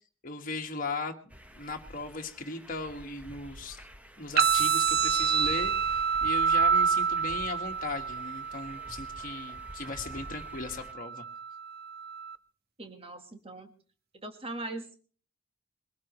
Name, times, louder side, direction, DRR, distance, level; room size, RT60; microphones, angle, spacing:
voice 1, 0.2-1.2 1.5-3.8 4.2-11.2, left 3 dB, 40° left, 2 dB, 1.8 m, -38 dB
sound 1, 1.3-10.9, equal, 5° right, 0.9 m, -49 dB
sound 2, 4.4-12.4, right 6 dB, 50° right, 0.9 m, -28 dB
voice 2, 12.8-13.7 14.2-15.0, right 2 dB, 30° right, 6 dB, 1.6 m, -40 dB
22.5 x 18.0 x 3.2 m, 0.42 s
head